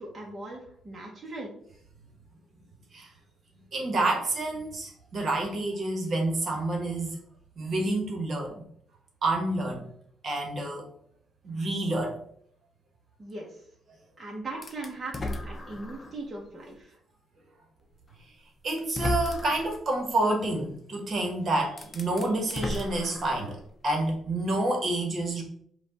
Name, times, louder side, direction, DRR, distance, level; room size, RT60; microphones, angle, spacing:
voice 1, 0.0-1.5 13.2-13.5 14.2-16.9, right 2 dB, 30° right, -3 dB, 1.0 m, -39 dB
voice 2, 3.7-7.2 7.6-8.6 9.2-9.9 10.2-10.8 11.4-12.2 18.6-25.4, right 2 dB, 50° right, 1 dB, 1.3 m, -28 dB
sound 1, 14.6-16.2 16.8-16.9 18.1-18.2 18.8-19.8 21.2-21.3 21.7-23.7, left 2 dB, 30° left, 0.6 m, -35 dB
5.0 x 2.4 x 4.0 m, 0.66 s
cardioid pair, 90°, 0 cm